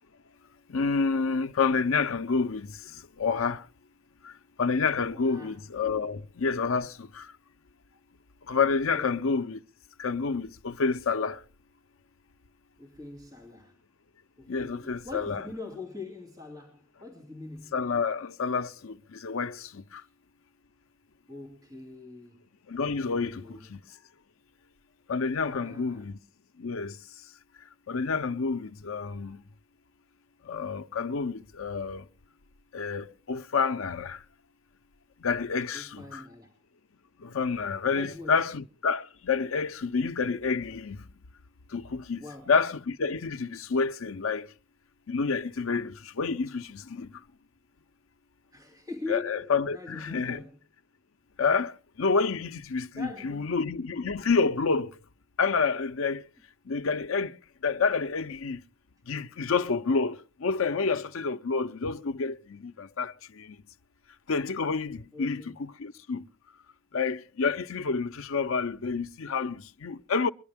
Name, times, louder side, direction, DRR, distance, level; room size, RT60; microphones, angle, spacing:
voice 1, 0.7-2.7 3.2-3.7 4.6-7.3 8.5-9.6 10.0-11.4 14.5-15.4 17.7-20.0 22.7-23.8 25.1-26.2 26.6-27.0 27.9-29.4 30.5-32.1 32.7-34.2 35.2-36.2 37.2-41.0 41.7-44.5 45.1-47.1 49.1-50.4 51.4-51.7 52.0-54.9 55.4-56.2 56.7-57.4 57.6-58.6 59.1-63.6 64.3-66.2 66.9-70.3, left 5 dB, 75° left, 0.6 m, -29 dB
voice 2, 5.1-5.6 8.7-9.1 12.8-13.8 14.4-17.8 20.0-20.1 21.3-22.5 23.0-23.7 25.4-26.1 35.7-36.5 37.9-38.4 42.2-42.5 48.5-50.6 52.9-53.5 65.1-65.6, left 3 dB, 20° right, 2.8 m, -43 dB
23.5 x 11.0 x 3.5 m
head